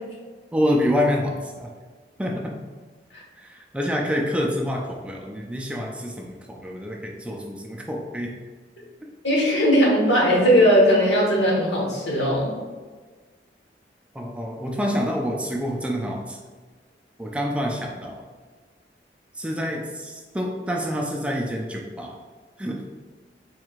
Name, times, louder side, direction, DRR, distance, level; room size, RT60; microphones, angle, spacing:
voice 1, 0.5-1.7 2.2-2.5 3.3-8.3 14.1-16.4 17.2-18.3 19.3-22.2 22.6-22.8, equal, 5° right, 0 dB, 0.3 m, -27 dB
voice 2, 9.2-12.5, equal, 90° left, -3 dB, 1.3 m, -18 dB
4.6 x 3.5 x 2.4 m, 1.4 s
head